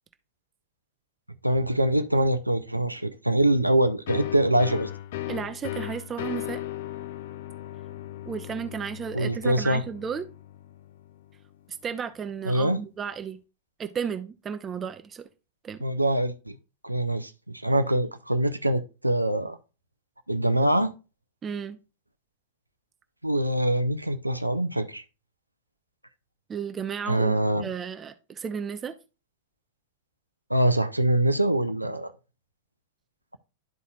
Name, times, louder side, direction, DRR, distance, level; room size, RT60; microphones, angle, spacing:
voice 1, 1.4-4.9 9.1-9.8 12.5-12.8 15.8-16.6 16.8-19.6 20.3-20.9 23.2-25.0 27.1-27.7 30.5-32.1, right 1 dB, 85° right, 0.5 m, -24 dB
sound 1, 4.1-11.5, left 14 dB, 55° left, 0.4 m, -37 dB
voice 2, 5.3-6.6 8.3-10.3 11.8-13.4 13.8-15.3 15.6-15.8 21.4-21.8 26.5-28.9, right 7 dB, 20° right, 0.6 m, -33 dB
12.0 x 4.1 x 2.4 m
figure-of-eight pair, 90°, 0 cm